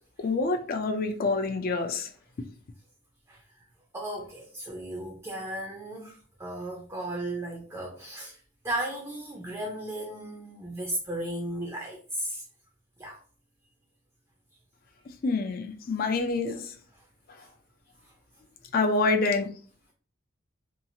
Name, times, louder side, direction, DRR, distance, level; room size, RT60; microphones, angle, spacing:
voice 1, 0.2-2.1 15.2-16.7 17.3-17.4 18.7-19.5, left 3 dB, 45° left, 0.4 m, -27 dB
voice 2, 3.9-12.4 13.0-13.2 17.0-17.1 17.4-17.5 18.0-18.1, right 1 dB, 15° right, 0.5 m, -35 dB
2.9 x 2.4 x 2.6 m
head